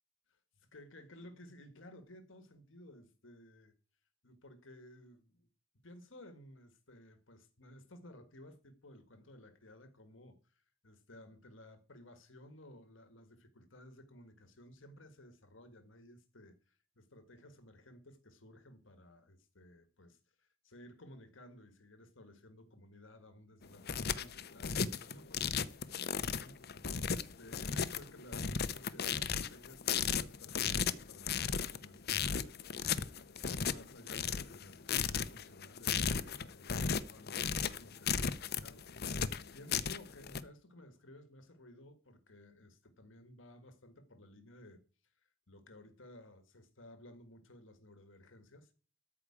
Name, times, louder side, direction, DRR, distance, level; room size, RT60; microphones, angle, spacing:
voice 1, 0.3-3.7 4.2-5.5 5.8-10.5 10.8-44.8 45.5-48.7, left 1 dB, 70° left, 1.8 m, -57 dB
sound 1, 23.6-40.4, left 7 dB, 50° left, 0.7 m, -35 dB
13.5 x 4.8 x 8.6 m
head